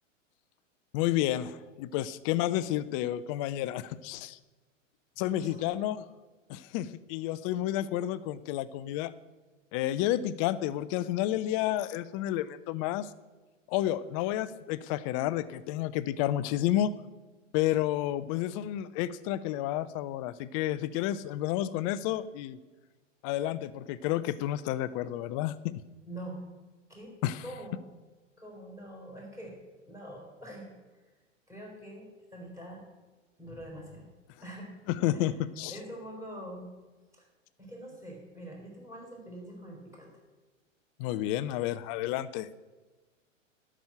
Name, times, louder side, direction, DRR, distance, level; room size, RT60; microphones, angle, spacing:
voice 1, 0.9-4.4 5.2-6.0 6.5-9.1 9.7-13.1 13.7-16.9 17.5-22.6 23.2-25.7 27.2-27.4 34.9-35.8 41.0-42.5, left 13 dB, 25° left, 15 dB, 0.5 m, -30 dB
voice 2, 5.2-5.7 26.1-26.4 26.9-27.1 27.4-27.8 28.4-29.6 29.9-30.7 31.5-32.8 33.4-34.1 34.4-34.7 35.1-35.3 35.7-36.7 37.1-37.3 37.6-40.1, right 1 dB, 10° right, -2 dB, 4.7 m, -44 dB
12.5 x 6.2 x 8.9 m, 1.2 s
figure-of-eight pair, 105°, 39 cm